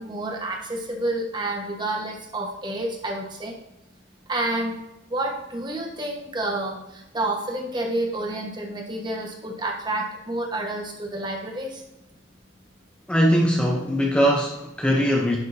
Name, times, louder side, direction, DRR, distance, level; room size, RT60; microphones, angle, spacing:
voice 1, 0.0-3.5 4.3-4.8 5.1-11.8, right 1 dB, 25° right, 1 dB, 1.1 m, -29 dB
voice 2, 13.1-15.4, equal, 5° left, 0 dB, 0.6 m, -21 dB
10.5 x 6.5 x 2.6 m, 0.90 s
head